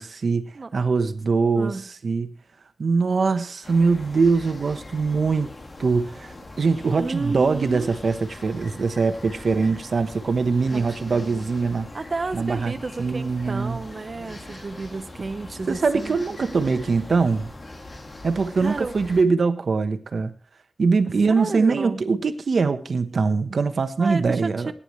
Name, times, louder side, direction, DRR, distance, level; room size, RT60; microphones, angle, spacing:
voice 1, 0.0-2.3 2.8-5.5 5.8-11.9 12.3-13.8 15.7-17.5 18.2-20.3 20.8-24.7, right 4 dB, 85° right, 1.2 m, -22 dB
voice 2, 1.5-1.9 7.0-7.9 9.4-9.7 10.7-11.5 11.9-16.7 18.5-18.9 21.4-22.0 24.0-24.7, right 3 dB, 60° right, 1.1 m, -32 dB
sound 1, 3.6-19.2, left 2 dB, 55° left, 2.5 m, -41 dB
20.0 x 10.0 x 3.2 m
wide cardioid pair, 55°, 0 cm